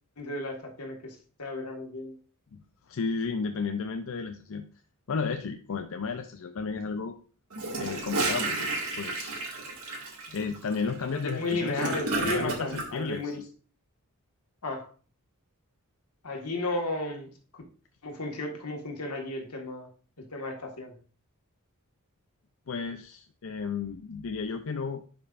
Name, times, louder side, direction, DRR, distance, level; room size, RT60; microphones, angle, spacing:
voice 1, 0.2-2.2 11.1-13.4 14.6-14.9 16.2-17.6 18.0-19.9 20.2-21.0, left 2 dB, 90° left, 1.7 m, -34 dB
voice 2, 2.5-4.7 5.1-7.1 7.7-8.7 9.0-9.4 10.3-12.0 12.3-13.5 22.7-25.0, left 5 dB, 65° left, 0.5 m, -33 dB
Gurgling / Toilet flush, 7.5-12.9, right 2 dB, 70° right, 2.1 m, -32 dB
11.0 x 5.3 x 2.5 m
head